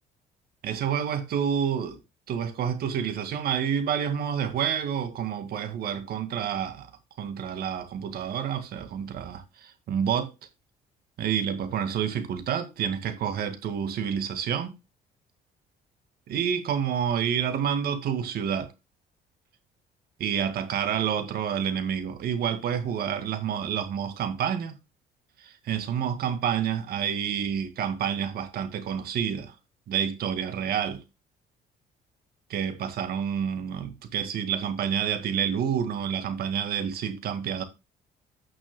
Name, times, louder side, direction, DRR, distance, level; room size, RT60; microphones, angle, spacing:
voice 1, 0.6-2.0 2.3-6.9 7.2-10.3 11.2-14.7 16.3-18.7 20.2-24.8 25.4-29.5 29.9-31.0 32.5-37.6, right 8 dB, 65° right, 2.0 m, -28 dB
16.0 x 6.3 x 2.2 m
cardioid pair, 110°, 17 cm